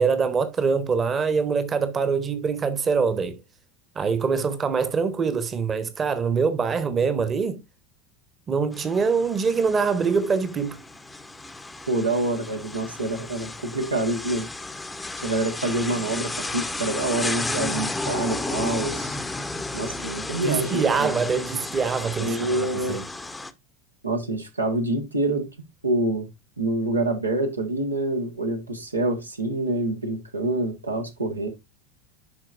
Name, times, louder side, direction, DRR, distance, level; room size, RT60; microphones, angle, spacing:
voice 1, 0.0-3.4 3.9-7.6 8.5-10.8 20.4-23.0, right 5 dB, 25° right, 1.1 m, -24 dB
sound 1, 8.7-23.5, left 2 dB, 10° left, 0.8 m, -33 dB
voice 2, 11.9-14.5 15.2-19.2 19.7-21.2 22.2-23.0 24.0-25.5 25.8-26.3 26.6-31.5, right 2 dB, 85° right, 1.4 m, -26 dB
11.0 x 4.6 x 2.5 m
figure-of-eight pair, 80°, 0 cm